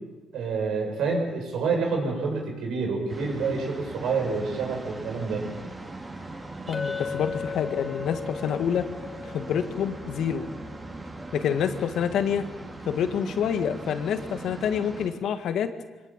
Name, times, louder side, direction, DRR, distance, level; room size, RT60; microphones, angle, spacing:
voice 1, 0.3-5.4, right 4 dB, 80° right, 1 dB, 7.4 m, -28 dB
sound 1, 3.1-15.1, right 2 dB, 25° right, 4.4 m, -40 dB
voice 2, 6.7-8.9 9.2-10.4 11.3-12.4 12.9-15.7, left 8 dB, 75° left, 9 dB, 1.8 m, -27 dB
Chink clink, 6.7-11.2, left 5 dB, 35° left, 2.8 m, -37 dB
24.0 x 18.5 x 9.1 m, 1.2 s
cardioid pair, 90°, 0 cm